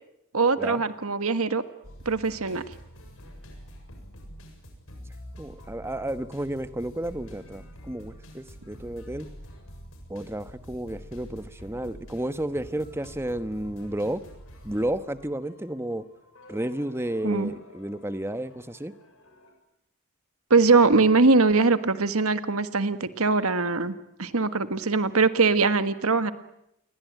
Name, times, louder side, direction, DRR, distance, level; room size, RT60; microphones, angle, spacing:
voice 1, 0.3-1.6 2.0-2.6 17.2-17.5 20.5-26.3, right 4 dB, 75° right, 11 dB, 1.6 m, -22 dB
sound 1, 1.8-19.5, equal, 65° left, 7.5 m, -47 dB
voice 2, 5.4-9.3 10.1-14.2 14.6-16.0 16.5-18.9, right 1 dB, 10° right, 12 dB, 1.1 m, -32 dB
28.5 x 22.5 x 9.2 m, 0.80 s
head